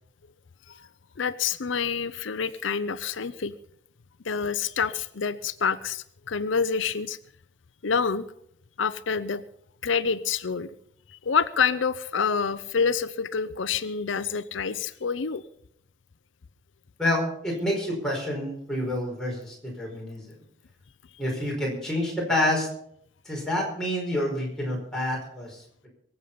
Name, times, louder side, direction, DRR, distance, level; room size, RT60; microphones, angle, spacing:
voice 1, 1.2-3.5 4.2-7.2 7.8-8.3 8.8-9.4 9.8-10.7 11.2-15.4, left 6 dB, 85° left, 13 dB, 0.6 m, -27 dB
voice 2, 17.0-20.2 21.2-22.7 23.2-25.9, left 1 dB, 5° left, -3 dB, 5.0 m, -28 dB
23.0 x 8.2 x 5.6 m, 0.70 s
head